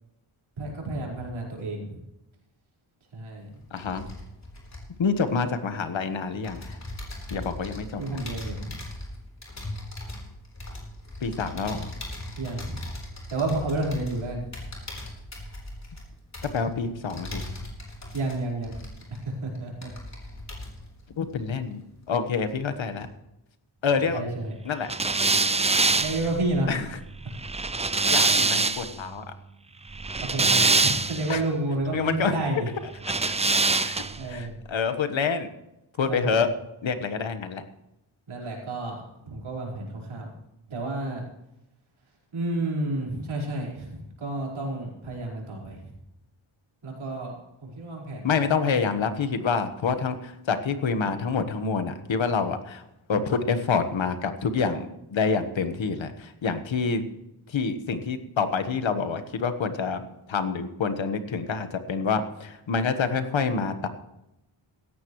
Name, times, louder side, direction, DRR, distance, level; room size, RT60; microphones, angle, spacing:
voice 1, 0.6-2.0 3.1-3.5 8.0-8.8 12.4-12.9 13.3-14.5 18.1-18.7 19.1-19.9 24.1-24.6 26.0-26.7 30.2-32.7 34.0-34.5 36.1-36.4 38.3-40.3 40.7-41.2 42.3-45.9 46.8-48.3 48.6-48.8, right 2 dB, 70° right, -2 dB, 5.0 m, -31 dB
sound 1, 3.4-6.0 6.4-22.1 22.4-23.0, left 1 dB, 35° left, 4.1 m, -40 dB
voice 2, 3.7-4.1 5.0-6.8 7.3-8.2 11.2-11.9 16.4-17.4 21.2-21.8 22.1-23.1 23.8-24.2 24.6-24.9 26.7-27.0 28.1-29.3 31.3-31.4 31.9-32.3 33.8-35.5 36.0-36.5 36.8-37.6 48.2-52.8 53.1-57.0 57.5-63.9, left 5 dB, 65° left, 9 dB, 1.4 m, -27 dB
sound 2, 24.9-29.0 29.9-31.4 33.0-34.3, right 3 dB, 15° right, 0.4 m, -24 dB
17.0 x 14.0 x 3.2 m, 0.88 s
wide cardioid pair, 140°, 49 cm